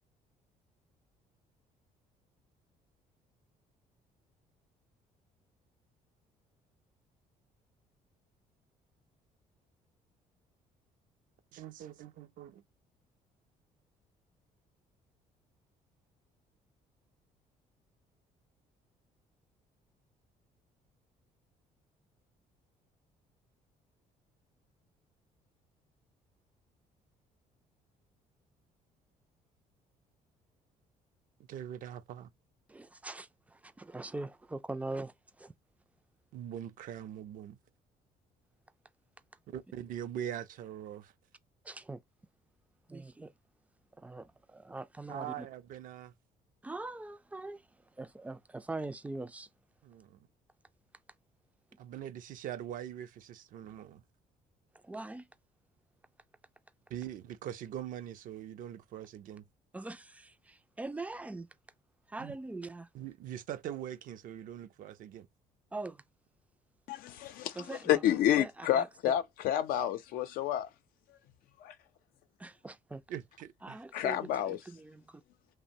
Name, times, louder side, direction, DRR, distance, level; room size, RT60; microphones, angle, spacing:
voice 1, 11.5-12.6 31.5-32.3 36.3-37.6 39.5-41.1 45.1-46.1 49.8-50.3 51.8-54.0 56.9-59.5 62.2-62.4 62.9-65.3 73.1-73.8, right 10 dB, 65° right, 0.5 m, -42 dB
voice 2, 32.7-35.1 35.4-35.5 41.6-42.0 42.9-43.3 44.0-45.5 46.6-47.6 48.0-49.5 54.8-55.3 59.7-61.5 62.1-62.9 65.7-66.0 67.6-68.0 68.4-68.9 72.4-73.0 73.6-75.2, right 2 dB, 10° right, 0.3 m, -42 dB
voice 3, 66.9-70.7 71.6-71.7 73.9-74.6, left 11 dB, 80° left, 0.5 m, -30 dB
2.9 x 2.1 x 2.6 m
cardioid pair, 100°, 15 cm